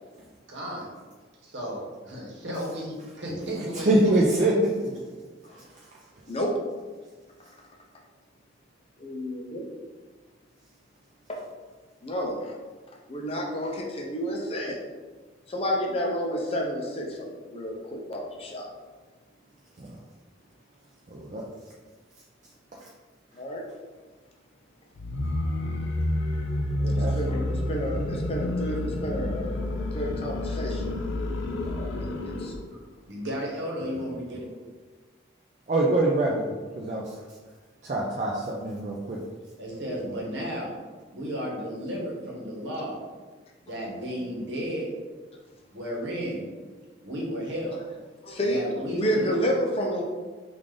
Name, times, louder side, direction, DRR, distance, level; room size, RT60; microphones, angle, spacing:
voice 1, 0.5-0.9 1.4-4.4 4.8-4.9 32.7-32.8 33.1-34.5 39.6-40.7 41.1-43.0 43.6-44.9 45.7-46.5 47.0-47.8 48.5-49.3, equal, 75° right, -2 dB, 1.0 m, -33 dB
voice 2, 3.9-4.5 19.8-19.9 21.1-21.4 26.8-27.2 32.0-32.1 35.7-36.4 36.8-37.1 37.8-39.2, right 2 dB, 40° right, -3 dB, 0.4 m, -24 dB
voice 3, 9.0-9.7 11.3-11.4 12.0-12.5 13.1-14.8 15.5-18.7 23.4-23.6 26.9-30.8 31.6-32.5 48.2-48.6 49.0-50.0, equal, 30° left, -1 dB, 0.5 m, -30 dB
sound 1, 25.0-32.6, left 1 dB, 85° left, 0.4 m, -29 dB
3.3 x 2.4 x 3.7 m, 1.4 s
head